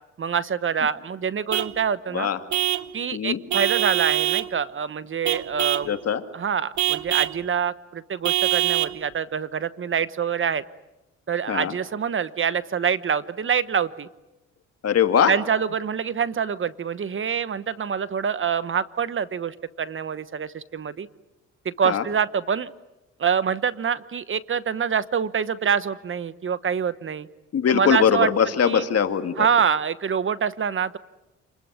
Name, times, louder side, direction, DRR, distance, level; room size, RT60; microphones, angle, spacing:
voice 1, 0.2-2.3 2.9-5.9 6.3-10.6 11.3-14.1 15.3-21.1 21.6-22.7 23.2-27.3 27.7-28.3 28.6-28.8 29.4-31.0, right 7 dB, 40° right, 15 dB, 1.1 m, -25 dB
Vehicle horn car horn honking / Truck, 1.5-1.8 2.5-2.9 3.5-4.5 5.3-5.9 6.8-7.4 8.3-9.0, right 15 dB, 70° right, 1.2 m, -24 dB
voice 2, 5.8-6.2 11.5-11.7 14.8-15.3 21.8-22.0 27.5-29.5, left 8 dB, 55° left, 8 dB, 2.2 m, -21 dB
28.5 x 21.0 x 9.6 m, 0.99 s
cardioid pair, 90°, 30 cm